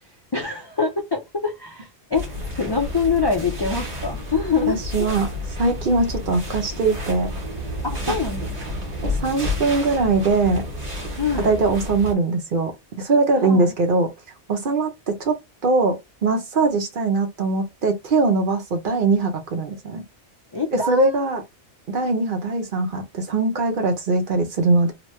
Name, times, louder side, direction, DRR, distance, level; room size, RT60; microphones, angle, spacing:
voice 1, 0.3-2.3 2.5-5.1 7.8-8.5 11.1-11.5 13.4-13.7 20.5-21.4, left 5 dB, 45° left, 0.3 m, -25 dB
sound 1, 2.1-12.1, left 1 dB, 40° right, 1.1 m, -30 dB
voice 2, 4.7-5.3 5.6-7.3 8.1-8.2 9.2-10.6 11.4-12.7 13.0-14.1 14.5-15.4 15.6-16.0 16.2-20.0 20.7-21.4 21.9-24.9, right 3 dB, 55° right, 0.7 m, -21 dB
3.0 x 2.2 x 3.0 m
omnidirectional pair, 1.2 m